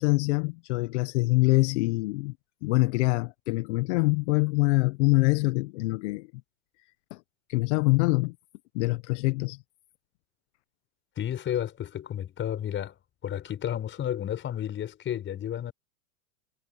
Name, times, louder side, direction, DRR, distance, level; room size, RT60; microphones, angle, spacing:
voice 1, 0.0-2.3 2.6-6.3 7.1-7.2 7.5-8.3 8.7-9.6, left 24 dB, 50° left, 1.0 m, -24 dB
voice 2, 11.2-13.0 13.2-15.7, left 10 dB, 25° left, 5.6 m, -32 dB
hypercardioid pair, 135°, 45 cm